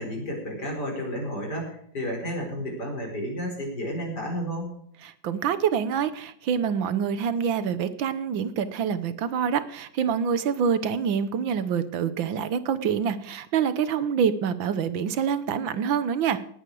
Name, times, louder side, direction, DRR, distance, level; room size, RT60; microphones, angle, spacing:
voice 1, 0.0-4.7, equal, 60° left, 1 dB, 5.2 m, -32 dB
voice 2, 5.1-16.4, right 7 dB, 85° right, 13 dB, 1.8 m, -26 dB
18.5 x 8.9 x 4.8 m, 0.68 s
omnidirectional pair, 2.0 m